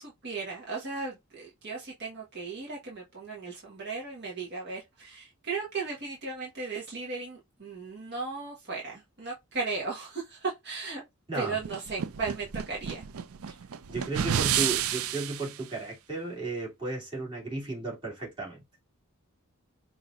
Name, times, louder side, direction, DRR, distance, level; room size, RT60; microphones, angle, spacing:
voice 1, 0.0-11.0 11.3-13.1 13.5-13.6, right 4 dB, 50° right, 1.3 m, -36 dB
sound 1, 11.6-15.5, right 9 dB, 80° right, 0.5 m, -30 dB
voice 2, 13.9-18.6, right 3 dB, 25° right, 2.7 m, -34 dB
5.5 x 2.8 x 2.4 m
head